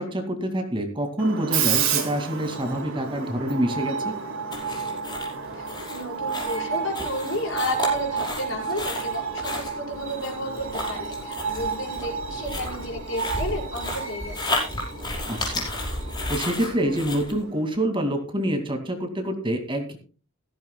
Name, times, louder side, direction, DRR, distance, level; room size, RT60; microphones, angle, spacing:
voice 1, 0.0-4.1 15.3-15.7 16.3-20.0, right 1 dB, 25° right, 5 dB, 2.4 m, -26 dB
Screech, 1.2-17.8, right 6 dB, 65° right, 3.7 m, -31 dB
sound 1, 4.5-17.4, left 2 dB, 20° left, 5.5 m, -33 dB
voice 2, 5.5-14.6, left 1 dB, 60° left, 0 dB, 5.9 m, -32 dB
17.0 x 15.5 x 2.3 m, 0.36 s
head